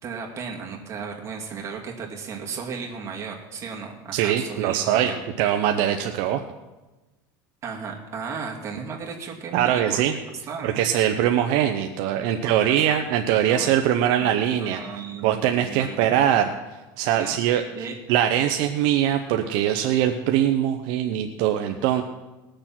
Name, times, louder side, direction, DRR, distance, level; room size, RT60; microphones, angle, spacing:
voice 1, 0.0-5.2 7.6-10.0 10.3-10.7 12.3-13.0 13.4-13.7 14.2-14.3 14.6-16.2 17.2-17.4 17.7-18.0, right 6 dB, 30° right, 0 dB, 2.3 m, -35 dB
voice 2, 4.1-6.4 9.5-10.1 10.6-14.8 15.2-16.5 17.0-17.6 18.1-22.0, right 10 dB, 60° right, 5 dB, 0.8 m, -22 dB
19.5 x 6.8 x 5.9 m, 1.1 s
supercardioid pair, 145°, 10 cm